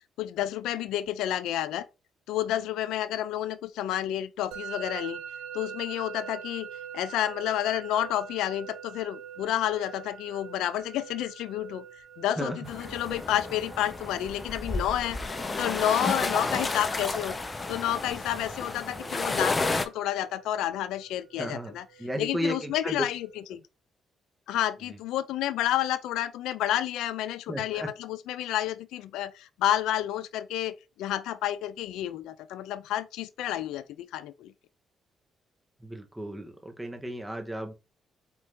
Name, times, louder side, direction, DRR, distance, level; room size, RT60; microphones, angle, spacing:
voice 1, 0.2-1.9 2.3-5.2 5.5-6.7 6.9-11.8 12.2-17.3 17.7-21.8 22.2-23.6 24.5-34.5, left 12 dB, 90° left, 0.4 m, -30 dB
Musical instrument, 4.5-23.4, right 9 dB, 85° right, 0.5 m, -46 dB
sound 1, 12.6-19.8, left 3 dB, 25° left, 0.6 m, -31 dB
voice 2, 21.4-23.1 27.5-27.9 35.8-37.7, equal, 10° right, 1.0 m, -34 dB
4.5 x 2.7 x 3.5 m
cardioid pair, 90°, 0 cm